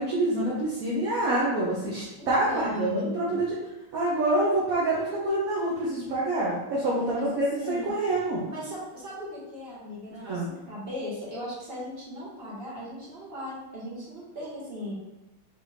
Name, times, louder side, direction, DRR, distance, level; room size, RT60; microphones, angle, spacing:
voice 1, 0.0-3.5 3.9-8.4 10.1-10.5, right 1 dB, 60° right, -6 dB, 0.9 m, -26 dB
voice 2, 2.2-3.3 7.1-7.9 8.5-10.4 10.7-14.9, left 1 dB, 30° right, -6 dB, 1.4 m, -37 dB
4.0 x 3.5 x 3.2 m, 0.97 s
omnidirectional pair, 2.3 m